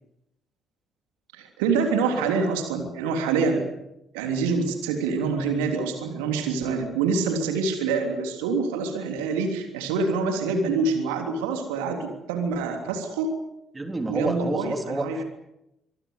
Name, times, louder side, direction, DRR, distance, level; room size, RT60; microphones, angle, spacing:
voice 1, 1.3-3.6 4.1-13.3 14.1-15.2, right 4 dB, 70° right, 5 dB, 3.3 m, -26 dB
voice 2, 13.7-15.1, right 2 dB, 20° right, 6 dB, 3.4 m, -29 dB
25.0 x 21.5 x 8.2 m, 0.86 s
figure-of-eight pair, 45°, 0 cm